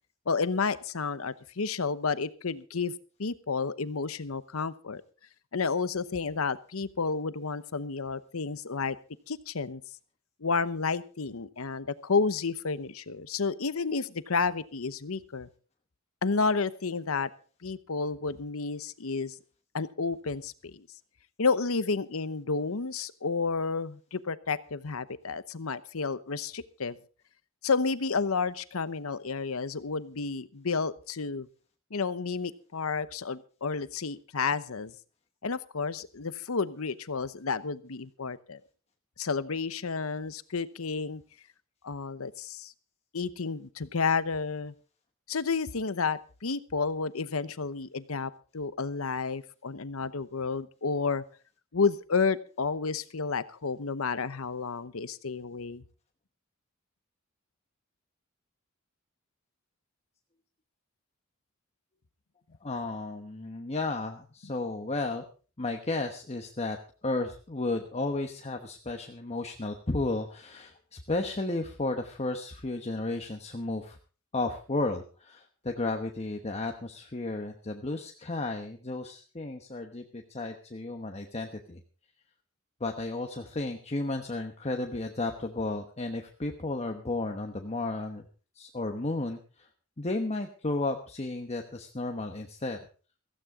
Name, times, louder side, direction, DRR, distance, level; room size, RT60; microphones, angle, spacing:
voice 1, 0.3-2.9 3.2-5.0 5.5-9.0 9.3-9.8 10.4-15.5 16.2-17.3 17.6-19.3 19.7-20.9 21.4-27.0 27.6-31.5 31.9-34.9 35.4-38.6 39.2-41.2 41.8-42.7 43.1-44.7 45.3-51.2 51.7-55.8, left 4 dB, 85° left, 14 dB, 0.9 m, -31 dB
voice 2, 62.6-65.3 65.6-66.8 67.0-74.0 74.3-81.8 82.8-88.3 88.5-89.7 90.0-92.8, left 2 dB, 30° left, 4 dB, 1.1 m, -33 dB
16.0 x 15.5 x 3.7 m, 0.37 s
head